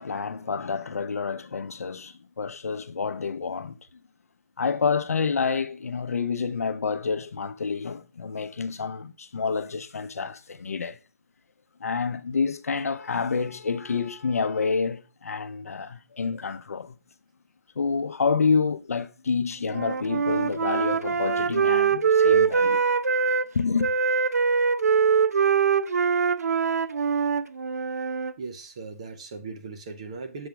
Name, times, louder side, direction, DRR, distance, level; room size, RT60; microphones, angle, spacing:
voice 1, 0.0-3.8 4.6-11.0 11.8-17.0 17.8-22.8 23.5-23.9, left 5 dB, 70° left, 0.7 m, -28 dB
Wind instrument woodwind instrument, 19.7-23.5 23.8-28.3, right 6 dB, 85° right, 0.5 m, -23 dB
voice 2, 28.4-30.5, right 4 dB, 25° right, 0.6 m, -38 dB
7.0 x 3.4 x 5.8 m
hypercardioid pair, 175°, 8 cm